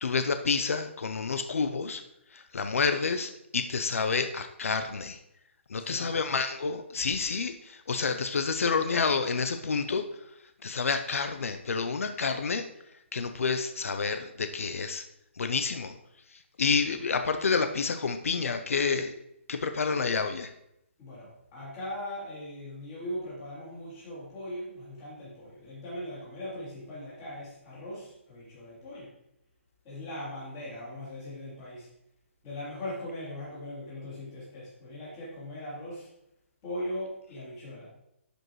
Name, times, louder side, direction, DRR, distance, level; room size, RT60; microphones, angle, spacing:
voice 1, 0.0-2.0 2.3-5.2 5.7-10.0 10.6-12.7 13.1-15.0 15.4-16.0 16.6-19.1 19.5-20.5, left 5 dB, 90° left, 8 dB, 0.6 m, -29 dB
voice 2, 5.8-6.3 6.9-7.1 21.0-29.1 29.8-31.9 32.4-36.1 36.6-37.9, left 1 dB, 20° left, -9 dB, 3.0 m, -39 dB
11.0 x 5.2 x 3.1 m, 0.82 s
hypercardioid pair, 180°, 7 cm